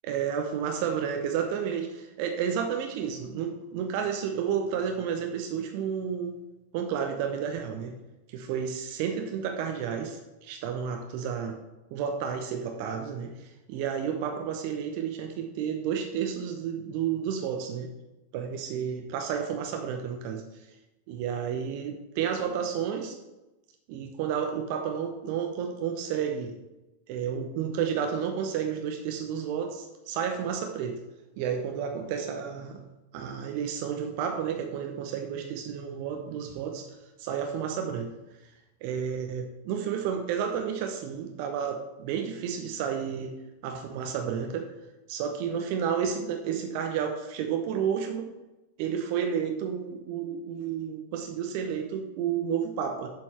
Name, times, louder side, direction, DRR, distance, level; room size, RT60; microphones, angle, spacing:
voice 1, 0.0-6.4 6.7-7.9 8.3-11.6 11.9-17.9 18.3-20.4 21.1-23.2 23.9-26.6 27.1-31.0 31.4-32.8 33.1-36.9 37.2-38.1 38.8-43.4 43.6-44.7 45.1-48.3 48.8-53.1, right 7 dB, 45° right, 4 dB, 0.7 m, -31 dB
7.3 x 4.4 x 4.5 m, 1.0 s
figure-of-eight pair, 90°, 0 cm